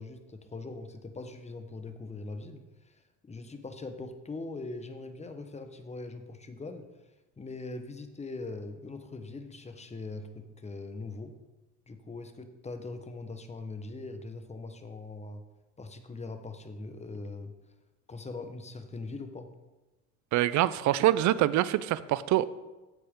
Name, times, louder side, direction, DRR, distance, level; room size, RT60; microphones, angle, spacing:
voice 1, 0.0-6.9 7.4-11.3 11.9-15.4 15.8-17.5 18.1-19.5, left 3 dB, 15° left, 7 dB, 1.1 m, -41 dB
voice 2, 20.3-22.5, right 14 dB, 50° right, 17 dB, 0.6 m, -25 dB
8.9 x 7.9 x 3.7 m, 1.1 s
supercardioid pair, 85°, 38 cm